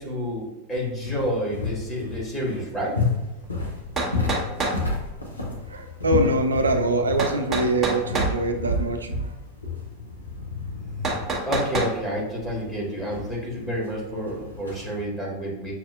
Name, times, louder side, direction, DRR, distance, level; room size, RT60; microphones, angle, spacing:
voice 1, 0.0-3.0 11.5-15.7, equal, 10° left, -4 dB, 1.2 m, -29 dB
sound 1, 0.7-15.0, left 3 dB, 80° left, 0.8 m, -31 dB
sound 2, 3.4-3.5 4.0-4.8 7.2-8.3 11.0-11.9, right 2 dB, 20° right, 0.7 m, -26 dB
voice 2, 5.7-9.3, right 2 dB, 75° right, 5 dB, 0.5 m, -24 dB
6.0 x 2.6 x 2.3 m, 1.1 s
figure-of-eight pair, 90°, 0 cm